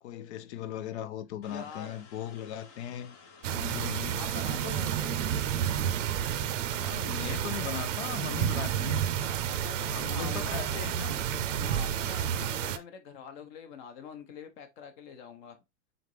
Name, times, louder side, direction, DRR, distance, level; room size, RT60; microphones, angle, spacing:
voice 1, 0.0-3.2 3.5-4.2 6.8-9.0 9.8-11.5 12.2-12.6, left 10 dB, 65° left, 0.6 m, -39 dB
sound 1, 1.4-7.7, left 5 dB, 20° left, 0.4 m, -54 dB
voice 2, 1.5-2.0 4.1-5.3 9.1-10.9 11.6-15.6, left 7 dB, 40° left, 0.9 m, -45 dB
sound 2, 3.4-12.8, right 9 dB, 90° right, 0.6 m, -30 dB
3.9 x 3.5 x 3.1 m
supercardioid pair, 160°, 36 cm